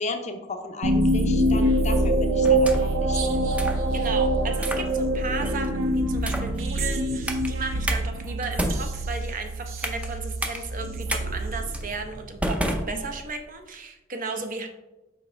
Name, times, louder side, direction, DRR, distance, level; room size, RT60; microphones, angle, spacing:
voice 1, 0.0-3.4 12.9-13.0, left 3 dB, 35° left, 6 dB, 0.6 m, -35 dB
sound 1, 0.8-12.4, right 1 dB, 80° right, 0.7 m, -25 dB
sound 2, 2.4-3.0 3.6-3.8 4.6-4.9 5.4-5.7 6.2-6.6 7.3-7.5 7.9-8.0 8.4-10.1 10.4-10.6 11.1-11.2 11.7-11.9 12.4-13.5, equal, 5° right, 0.5 m, -30 dB
voice 2, 3.9-14.7, right 4 dB, 45° right, 5 dB, 0.7 m, -35 dB
6.5 x 4.7 x 3.3 m, 1.0 s
head